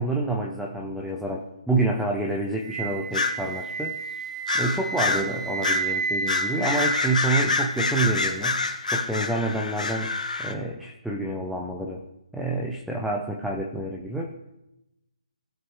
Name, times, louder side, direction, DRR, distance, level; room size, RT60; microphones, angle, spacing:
voice 1, 0.0-4.0 4.5-8.6 8.9-10.1 10.4-12.0 12.3-14.3, right 2 dB, ahead, -1 dB, 0.5 m, -28 dB
Wind instrument woodwind instrument, 2.6-8.6, right 4 dB, 45° right, 1.5 m, -32 dB
sound 1, 3.1-3.4 4.5-5.3 5.6-5.9 6.3-10.5, left 4 dB, 85° left, 1.4 m, -26 dB
17.0 x 6.4 x 3.1 m, 0.90 s
hypercardioid pair, 170°, 4 cm